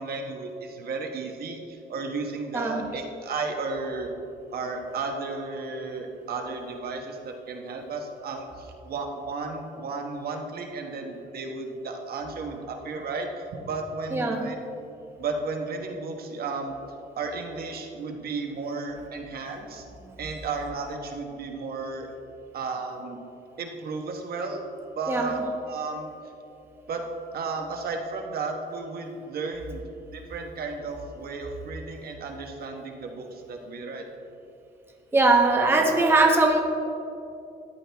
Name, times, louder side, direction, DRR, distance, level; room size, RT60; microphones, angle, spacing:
voice 1, 0.0-4.1 4.5-14.6 15.2-16.7 17.2-19.8 20.2-22.1 22.5-23.2 23.6-24.6 24.9-26.1 26.9-27.0 27.3-29.8 30.1-34.1, right 3 dB, 55° right, 3 dB, 1.2 m, -33 dB
voice 2, 2.5-2.9 14.1-14.5 25.1-25.3 35.1-36.6, right 3 dB, 10° right, 2 dB, 0.9 m, -21 dB
14.0 x 10.0 x 3.5 m, 2.9 s
cardioid pair, 145°, 19 cm